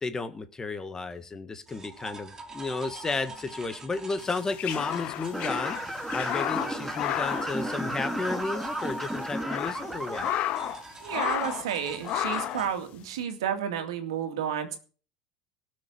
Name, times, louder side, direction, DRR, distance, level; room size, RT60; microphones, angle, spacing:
voice 1, 0.0-10.3, left 3 dB, 20° left, 10 dB, 1.6 m, -33 dB
sound 1, 1.7-12.7, right 2 dB, 20° right, 2.7 m, -44 dB
sound 2, 4.3-8.4 8.6-8.7 9.2-10.8 11.1-11.7 12.0-12.7, left 12 dB, 50° left, 1.0 m, -32 dB
sound 3, 5.3-10.3, right 1 dB, 5° right, 2.4 m, -33 dB
voice 2, 11.0-14.8, right 8 dB, 75° right, 7 dB, 2.2 m, -31 dB
17.5 x 6.7 x 7.1 m, 0.40 s
hypercardioid pair, 75°, 3 cm